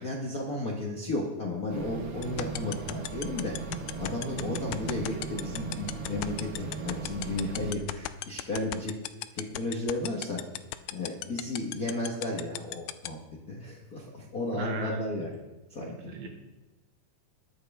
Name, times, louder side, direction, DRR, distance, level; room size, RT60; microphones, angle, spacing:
voice 1, 0.0-3.5 4.0-8.9 9.3-10.4 10.9-13.2 13.5-15.3 15.7-16.3, left 2 dB, 55° left, -3 dB, 1.0 m, -33 dB
sound 1, 1.7-7.7, right 4 dB, 70° right, 1.1 m, -38 dB
sound 2, 2.2-13.1, left 17 dB, 80° left, 2.0 m, -33 dB
voice 2, 14.5-15.3 16.0-16.3, right 5 dB, 90° right, 3 dB, 3.2 m, -37 dB
21.0 x 7.7 x 3.5 m, 1.2 s
omnidirectional pair, 3.9 m